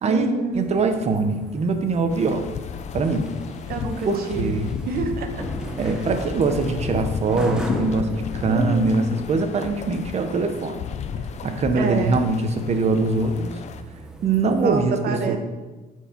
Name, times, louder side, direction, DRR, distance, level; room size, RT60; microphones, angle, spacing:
voice 1, 0.0-0.8 3.7-5.4 5.8-6.1 8.4-9.2 11.7-12.2 14.6-15.4, right 4 dB, 65° right, 5 dB, 1.1 m, -28 dB
sound 1, 0.5-14.7, equal, 5° right, 0.9 m, -37 dB
voice 2, 0.5-2.5 2.9-3.3 4.0-4.7 5.8-10.8 11.4-13.6 14.2-15.4, right 3 dB, 40° right, 7 dB, 0.9 m, -22 dB
sound 2, 2.1-13.8, left 7 dB, 40° left, 0.4 m, -34 dB
9.0 x 4.7 x 4.4 m, 1.2 s
cardioid pair, 110°, 17 cm